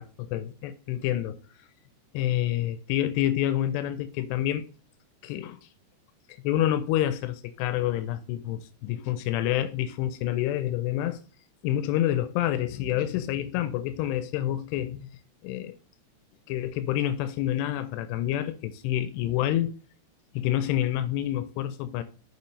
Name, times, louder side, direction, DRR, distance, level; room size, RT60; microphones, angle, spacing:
voice 1, 0.0-1.4 2.1-4.6 5.2-5.6 6.4-11.2 11.6-15.1 15.4-15.8 16.5-19.7 20.3-22.0, left 12 dB, 90° left, 2.7 m, -28 dB
6.9 x 5.4 x 3.1 m
omnidirectional pair, 4.8 m